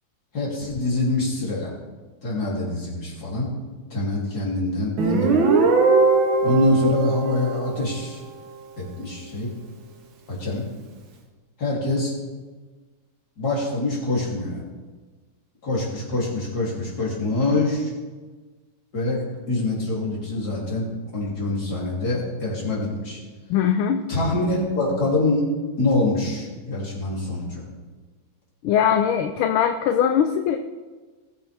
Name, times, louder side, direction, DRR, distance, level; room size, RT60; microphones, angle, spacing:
voice 1, 0.3-1.7 2.2-3.5 3.9-5.3 6.4-8.2 8.8-9.5 10.3-10.6 11.6-12.1 13.4-14.6 15.6-17.9 18.9-20.9 21.1-23.2 24.1-25.4 25.8-27.6, left 2 dB, 45° left, -4 dB, 3.5 m, -25 dB
Guitar, 5.0-8.4, right 4 dB, 65° right, 1.8 m, -20 dB
voice 2, 23.5-24.1 28.6-30.6, left 9 dB, 80° left, 7 dB, 1.5 m, -21 dB
19.0 x 8.1 x 3.4 m, 1.3 s
omnidirectional pair, 2.3 m